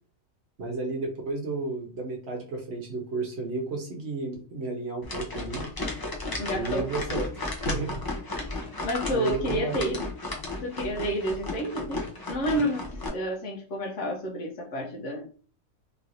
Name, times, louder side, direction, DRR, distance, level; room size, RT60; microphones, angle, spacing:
voice 1, 0.6-5.7 6.5-8.0 8.5-8.6 9.1-10.1, right 3 dB, 55° right, 1 dB, 1.0 m, -33 dB
sound 1, 5.0-13.1, left 2 dB, 35° left, 0.3 m, -34 dB
voice 2, 6.4-6.9 8.8-10.0 10.6-15.3, equal, 60° left, 2 dB, 1.0 m, -30 dB
3.1 x 2.9 x 2.6 m, 0.40 s
omnidirectional pair, 1.5 m